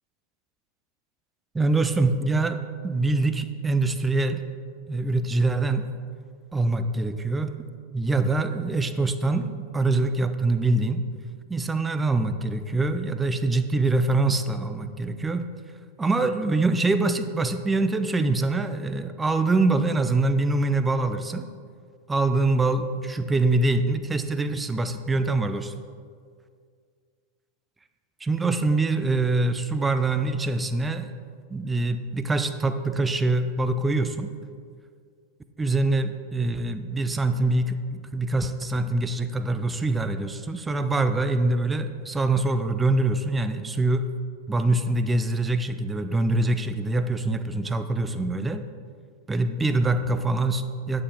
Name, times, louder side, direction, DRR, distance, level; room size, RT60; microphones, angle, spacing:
voice 1, 1.5-4.4 4.9-5.9 6.5-7.6 7.9-11.0 11.5-15.5 16.0-21.5 22.1-25.7 28.2-31.1 31.5-34.3 35.6-44.1 44.5-48.6 49.3-51.0, right 2 dB, 10° right, 10 dB, 0.4 m, -24 dB
9.8 x 5.7 x 4.7 m, 2.1 s
figure-of-eight pair, 90°, 0 cm